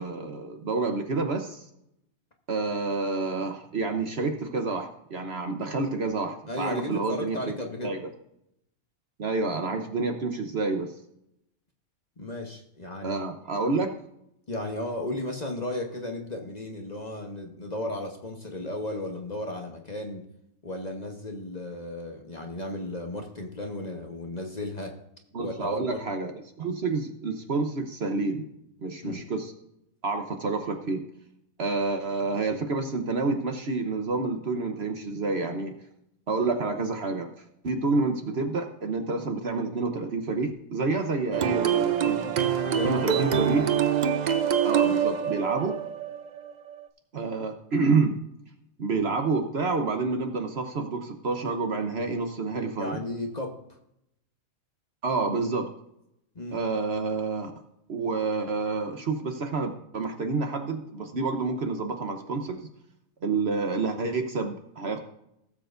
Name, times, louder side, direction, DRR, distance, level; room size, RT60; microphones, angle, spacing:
voice 1, 0.0-1.6 2.5-7.4 7.8-8.1 9.2-10.9 13.0-13.9 25.3-26.3 26.6-28.4 28.8-29.5 30.0-31.0 31.6-35.7 36.3-37.3 37.6-42.3 42.8-43.6 44.6-45.8 47.1-48.2 48.8-53.0 55.0-55.7 56.5-57.5 57.9-62.6 63.2-65.0, right 3 dB, 50° right, 5 dB, 1.1 m, -28 dB
voice 2, 6.5-7.9 12.2-13.2 14.5-20.3 20.6-25.0 25.4-26.0 29.0-29.2 42.6-43.3 52.7-53.6 56.3-56.6, left 1 dB, 30° left, 2 dB, 1.1 m, -34 dB
sound 1, 41.3-46.8, right 8 dB, 85° right, 0.3 m, -25 dB
17.0 x 7.4 x 2.6 m, 0.79 s
omnidirectional pair, 1.5 m